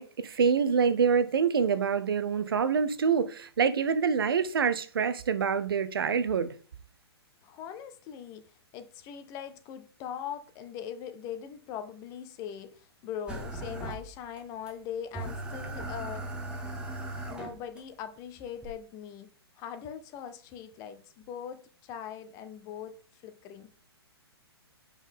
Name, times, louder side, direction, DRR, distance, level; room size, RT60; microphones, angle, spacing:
voice 1, 0.0-6.5, right 6 dB, 60° right, 0.8 m, -26 dB
voice 2, 7.4-16.3 17.2-19.3 19.6-23.7, left 9 dB, 25° left, 0.7 m, -41 dB
sound 1, 13.3-14.4 14.7-14.8 15.1-17.8 18.6-18.7, right 2 dB, 5° right, 1.0 m, -38 dB
7.3 x 5.4 x 3.6 m
figure-of-eight pair, 115°, 14 cm